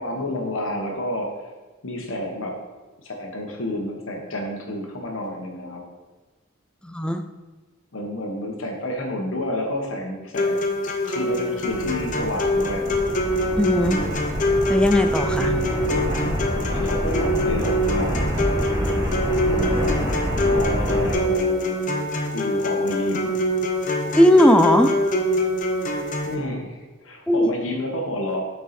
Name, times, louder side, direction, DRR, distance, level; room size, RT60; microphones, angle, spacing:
voice 1, 0.0-1.5 1.8-2.6 3.0-5.8 7.9-10.6 11.0-13.0 15.3-16.2 16.6-18.5 19.4-19.9 20.4-21.8 22.3-23.3 26.3-28.4, left 1 dB, 80° left, 1 dB, 1.2 m, -30 dB
voice 2, 6.8-7.2 13.6-14.0 14.7-15.6 24.2-24.9 27.3-27.5, equal, 5° left, 7 dB, 0.3 m, -18 dB
sound 1, 10.3-26.3, left 1 dB, 40° left, 0.7 m, -24 dB
sound 2, 11.7-21.1, equal, 15° right, 1.2 m, -27 dB
6.7 x 4.7 x 4.3 m, 1.2 s
head